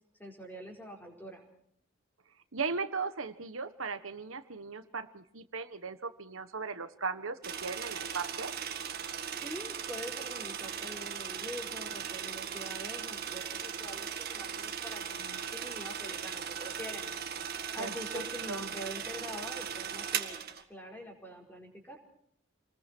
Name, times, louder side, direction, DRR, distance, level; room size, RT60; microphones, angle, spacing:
voice 1, 0.2-1.5 9.4-17.1 17.7-20.4 20.7-22.0, equal, 10° left, 1 dB, 4.7 m, -45 dB
voice 2, 2.5-8.5 17.8-18.2 18.5-18.7, right 4 dB, 75° right, 10 dB, 1.4 m, -37 dB
sound 1, 7.4-20.6, right 8 dB, 45° right, 2.0 m, -38 dB
28.5 x 21.0 x 4.6 m, 0.69 s
head